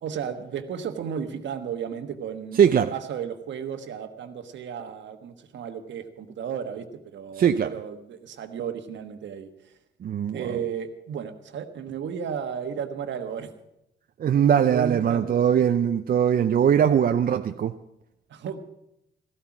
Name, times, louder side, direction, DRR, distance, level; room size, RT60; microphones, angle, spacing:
voice 1, 0.0-6.9 7.1-9.5 10.3-13.5 14.7-15.6 18.3-18.6, right 7 dB, 65° right, 1.4 m, -34 dB
voice 2, 2.5-2.9 7.4-7.7 10.0-10.6 14.2-17.8, right 8 dB, 50° right, 0.6 m, -21 dB
14.0 x 13.0 x 6.0 m
cardioid pair, 90°, 20 cm